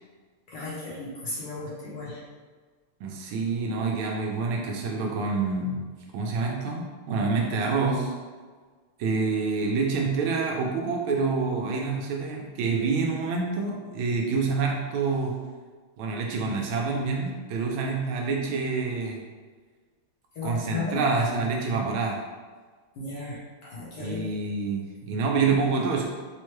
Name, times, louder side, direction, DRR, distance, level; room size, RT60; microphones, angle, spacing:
voice 1, 0.5-2.2 20.4-21.0 23.0-24.2 25.4-25.6, left 3 dB, 60° left, -6 dB, 1.3 m, -35 dB
voice 2, 3.0-5.8 6.1-8.1 9.0-15.4 16.0-19.2 20.4-22.2 24.0-26.1, right 4 dB, 80° right, -1 dB, 1.5 m, -27 dB
4.5 x 2.2 x 3.1 m, 1.5 s
omnidirectional pair, 2.3 m